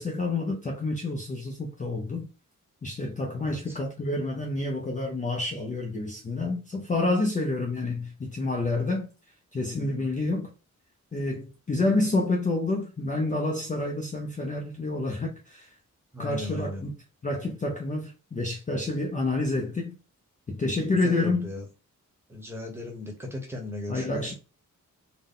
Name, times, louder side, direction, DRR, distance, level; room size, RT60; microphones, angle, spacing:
voice 1, 0.0-2.3 2.8-9.1 9.5-10.5 11.1-15.7 16.2-16.9 17.2-20.0 20.5-21.5 23.9-24.3, left 2 dB, 25° left, 0.5 m, -28 dB
voice 2, 3.4-3.8 10.0-10.1 16.1-16.9 21.0-21.6 22.3-24.3, left 2 dB, 5° right, 0.9 m, -37 dB
3.9 x 2.1 x 3.6 m
wide cardioid pair, 165°, 32 cm